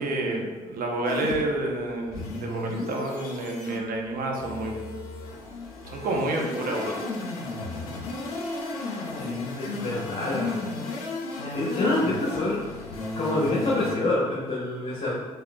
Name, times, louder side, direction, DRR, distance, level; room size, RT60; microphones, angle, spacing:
voice 1, 0.0-4.9 5.8-7.0, right 2 dB, 50° right, 1 dB, 0.7 m, -29 dB
sound 1, 1.0-14.0, left 3 dB, 85° left, 0.4 m, -34 dB
voice 2, 9.2-10.7 11.5-12.6 13.1-15.1, left 2 dB, 35° left, -6 dB, 0.9 m, -27 dB
3.6 x 3.3 x 2.3 m, 1.4 s
hypercardioid pair, 45°, 18 cm